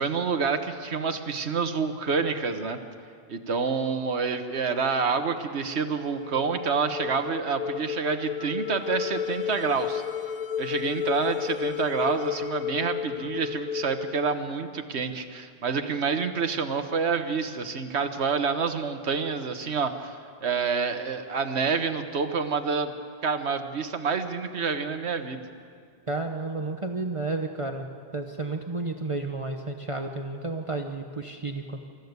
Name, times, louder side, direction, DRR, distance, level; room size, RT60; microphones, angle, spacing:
voice 1, 0.0-2.8 3.3-10.0 10.6-22.9 23.2-25.4, right 5 dB, 90° right, 8 dB, 1.5 m, -28 dB
sound 1, 5.8-15.0, left 9 dB, 45° left, 0.6 m, -33 dB
voice 2, 26.1-31.8, right 3 dB, 30° right, 4 dB, 1.0 m, -32 dB
25.5 x 14.5 x 8.1 m, 2.3 s
omnidirectional pair, 1.1 m